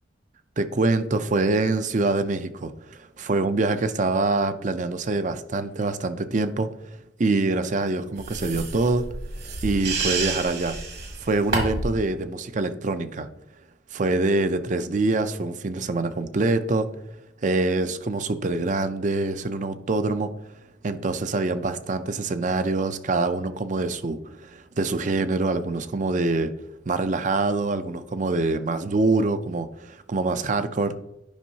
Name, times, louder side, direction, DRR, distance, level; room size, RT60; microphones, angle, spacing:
voice 1, 0.6-3.0 3.3-6.7 7.2-9.0 9.6-10.8 11.2-13.3 13.9-16.9 17.4-20.3 20.8-26.5 26.9-31.0, right 3 dB, 45° right, 11 dB, 0.5 m, -25 dB
sound 1, 8.2-12.0, right 3 dB, 60° right, 1.6 m, -29 dB
10.5 x 5.4 x 2.8 m, 0.87 s
head